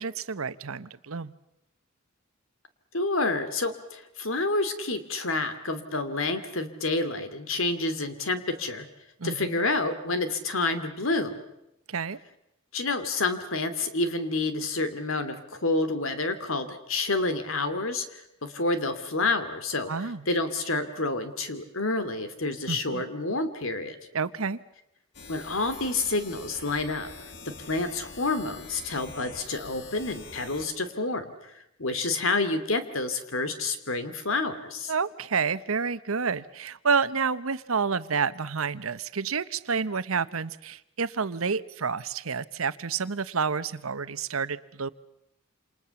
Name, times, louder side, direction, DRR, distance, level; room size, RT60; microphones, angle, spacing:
voice 1, 0.0-1.3 9.2-9.6 11.9-12.2 19.9-20.2 22.7-23.0 24.1-24.6 34.9-44.9, right 5 dB, 90° right, 15 dB, 1.0 m, -29 dB
voice 2, 2.9-8.8 9.2-11.4 12.7-24.0 25.3-27.1 27.7-31.3 31.8-34.9, left 3 dB, 75° left, 10 dB, 2.7 m, -29 dB
sound 1, 25.1-30.7, left 4 dB, 55° left, 2.5 m, -45 dB
28.0 x 27.5 x 7.1 m, 0.86 s
head